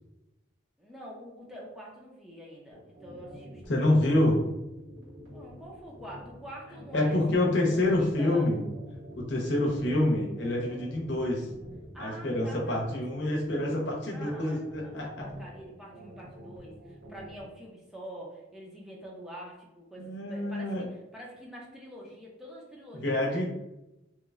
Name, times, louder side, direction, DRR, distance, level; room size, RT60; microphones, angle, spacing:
voice 1, 0.8-4.0 5.3-8.5 11.9-12.8 14.1-20.9 21.1-23.4, equal, ahead, -4 dB, 0.5 m, -46 dB
sound 1, 2.7-17.4, equal, 75° right, 1.3 m, -48 dB
voice 2, 3.7-4.4 6.9-8.6 9.2-11.5 12.0-15.1 20.0-20.9 22.9-23.4, left 1 dB, 70° left, -2 dB, 0.8 m, -27 dB
3.0 x 2.1 x 3.6 m, 0.94 s
head